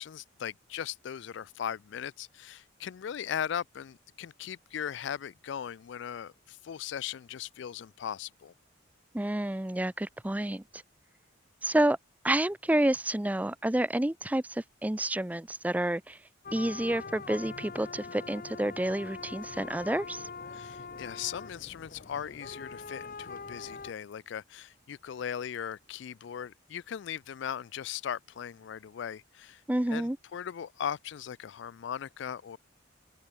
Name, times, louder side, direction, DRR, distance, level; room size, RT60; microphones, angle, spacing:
voice 1, 0.0-8.5 20.5-29.6 29.9-32.6, left 8 dB, 65° left, 0.3 m, -38 dB
voice 2, 9.1-10.8 11.6-12.0 12.2-16.2 16.5-20.3 29.7-30.2, right 1 dB, 5° right, 0.4 m, -29 dB
sound 1, 16.4-23.9, left 4 dB, 45° left, 0.8 m, -43 dB
open air
head